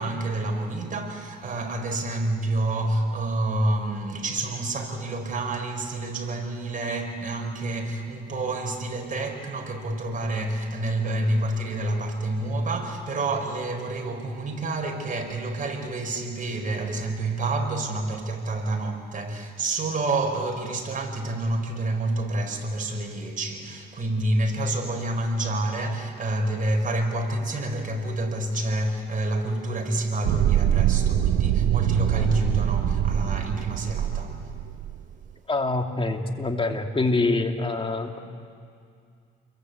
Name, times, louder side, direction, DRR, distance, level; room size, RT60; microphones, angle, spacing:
voice 1, 0.0-34.4, right 2 dB, 40° right, 3 dB, 5.2 m, -28 dB
sound 1, 30.2-35.0, right 11 dB, 75° right, 0.8 m, -23 dB
voice 2, 35.5-38.2, left 3 dB, 25° left, 3 dB, 2.9 m, -25 dB
29.5 x 22.5 x 8.3 m, 2.3 s
cardioid pair, 90°, 20 cm